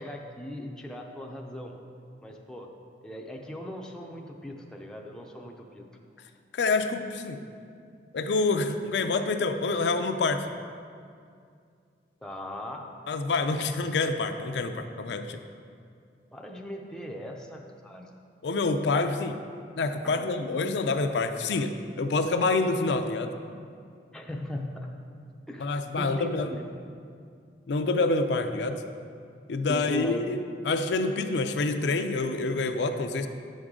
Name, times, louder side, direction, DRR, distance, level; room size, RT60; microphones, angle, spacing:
voice 1, 0.0-1.7 2.2-2.7 3.0-5.9 12.2-12.9 16.3-18.1 20.2-20.3 24.1-24.9 25.5-26.6 29.7-30.2, left 1 dB, 5° left, 0 dB, 0.5 m, -39 dB
voice 2, 6.5-7.4 8.1-10.5 13.1-15.4 18.4-19.4 19.8-23.3 25.6-26.5 27.7-28.8 29.5-30.4 30.7-33.3, left 3 dB, 75° left, 7 dB, 0.4 m, -27 dB
9.1 x 6.3 x 3.7 m, 2.3 s
head